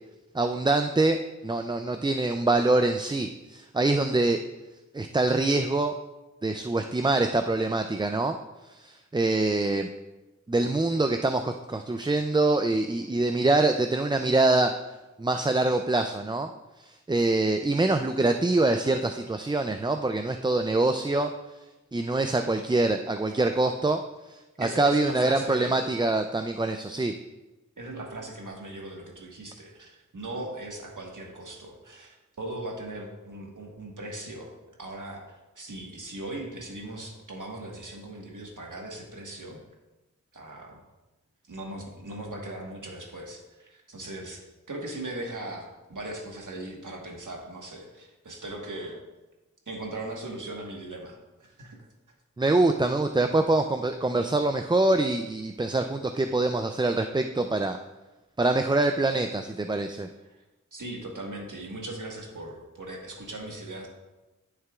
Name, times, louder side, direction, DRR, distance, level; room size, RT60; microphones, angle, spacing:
voice 1, 0.3-1.2 1.4-4.4 4.9-5.9 6.4-8.4 8.8-9.9 10.5-14.8 15.2-16.5 16.8-21.3 21.9-24.0 24.3-27.1 52.4-57.8 58.4-60.1, right 2 dB, 15° right, 6 dB, 0.3 m, -25 dB
voice 2, 24.6-25.8 27.8-34.5 34.8-35.2 35.6-39.6 40.3-40.8 41.5-44.4 44.7-49.0 49.7-51.8 60.3-60.4 60.7-63.9, right 1 dB, 80° right, 0 dB, 1.4 m, -39 dB
12.0 x 6.7 x 2.4 m, 1.1 s
wide cardioid pair, 50°, 31 cm